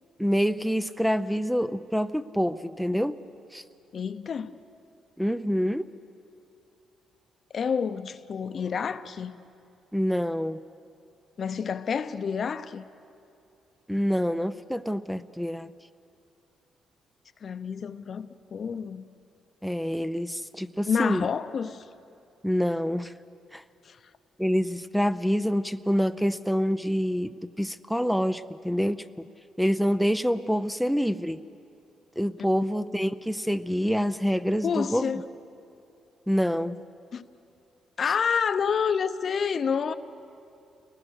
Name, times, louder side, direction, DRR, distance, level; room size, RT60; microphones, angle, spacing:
voice 1, 0.2-3.1 3.5-3.6 5.2-5.9 9.9-10.6 13.9-15.7 19.6-21.3 22.4-23.1 23.5-23.6 24.4-29.3 29.6-31.4 32.2-35.1 36.3-36.8, equal, ahead, 0.6 m, -26 dB
voice 2, 3.9-4.5 7.5-9.4 11.4-12.8 17.4-19.0 20.9-21.9 23.8-24.0 34.6-35.2 37.1-37.2 38.0-39.9, left 6 dB, 50° left, 0.8 m, -28 dB
29.5 x 20.0 x 6.5 m
cardioid pair, 90°, 0 cm